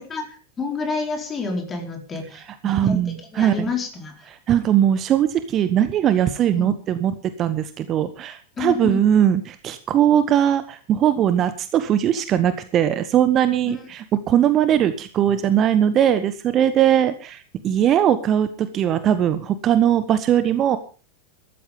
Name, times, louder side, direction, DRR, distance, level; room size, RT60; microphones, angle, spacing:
voice 1, 0.0-3.0 3.3-4.1 6.5-6.7 8.6-9.0 13.6-13.7, left 4 dB, 20° left, 4 dB, 4.4 m, -29 dB
voice 2, 2.3-3.6 4.5-20.8, right 10 dB, 30° right, 12 dB, 1.2 m, -20 dB
14.0 x 13.5 x 5.3 m, 0.37 s
figure-of-eight pair, 90°, 0 cm